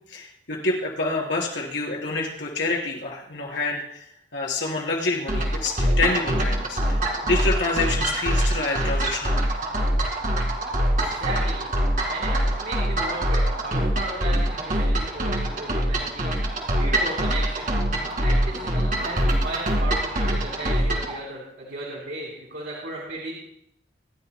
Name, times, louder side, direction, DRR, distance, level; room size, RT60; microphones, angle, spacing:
voice 1, 0.1-4.0 4.3-9.4 11.0-11.2, left 3 dB, 85° left, -2 dB, 3.8 m, -27 dB
sound 1, 5.3-21.1, right 1 dB, 45° right, 2.2 m, -24 dB
voice 2, 11.0-11.7 12.1-16.3 16.8-17.7 18.0-23.3, right 2 dB, 80° right, -5 dB, 3.6 m, -35 dB
26.0 x 11.5 x 2.2 m, 0.72 s
head